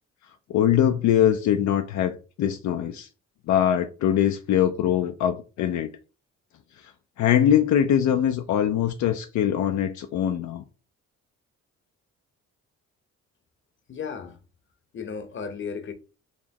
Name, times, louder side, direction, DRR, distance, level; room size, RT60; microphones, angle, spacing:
voice 1, 0.5-3.1 3.5-5.9 6.8-6.9 7.2-10.6, left 10 dB, 70° left, 0.5 m, -22 dB
voice 2, 13.9-14.4 14.9-15.9, left 6 dB, 40° left, 0.8 m, -34 dB
4.2 x 3.0 x 2.9 m
cardioid pair, 90°, 30 cm